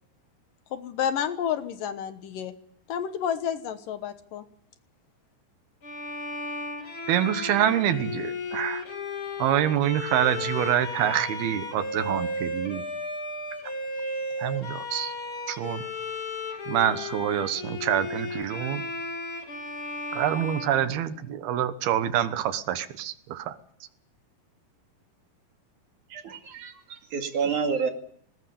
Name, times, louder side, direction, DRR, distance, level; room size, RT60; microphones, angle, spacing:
voice 1, 0.7-2.5 2.9-4.4, left 8 dB, 70° left, 10 dB, 2.6 m, -30 dB
Bowed string instrument, 5.8-21.6, left 2 dB, 35° left, 3.3 m, -35 dB
voice 2, 7.1-8.9 9.4-12.8 14.4-15.1 15.5-15.8 16.7-18.9 20.1-23.6, right 10 dB, 85° right, 11 dB, 3.2 m, -26 dB
voice 3, 26.1-27.9, right 5 dB, 60° right, 4 dB, 3.6 m, -29 dB
20.0 x 19.5 x 8.6 m, 0.66 s
omnidirectional pair, 4.3 m